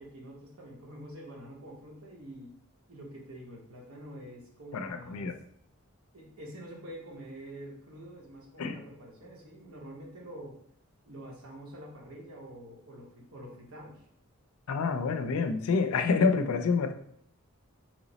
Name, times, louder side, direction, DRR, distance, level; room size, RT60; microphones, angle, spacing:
voice 1, 0.0-2.5 2.9-5.3 6.1-10.5 11.0-14.0, right 1 dB, 80° right, -2 dB, 1.0 m, -46 dB
voice 2, 4.7-5.3 8.6-8.8 14.7-16.9, left 4 dB, 80° left, 8 dB, 0.4 m, -27 dB
3.1 x 2.0 x 3.9 m, 0.68 s
head